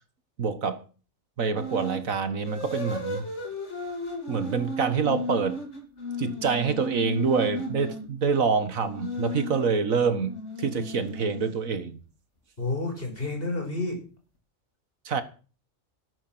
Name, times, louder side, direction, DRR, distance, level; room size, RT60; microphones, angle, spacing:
voice 1, 0.4-0.8 1.4-3.2 4.3-5.6 6.2-12.0 15.1-15.2, right 5 dB, 75° right, 1.9 m, -26 dB
sound 1, 1.6-2.0 2.4-8.1 8.8-11.7, left 2 dB, 55° left, 3.7 m, -35 dB
voice 2, 12.6-14.0, left 2 dB, 40° left, 5.7 m, -30 dB
13.0 x 12.0 x 6.1 m
omnidirectional pair, 1.4 m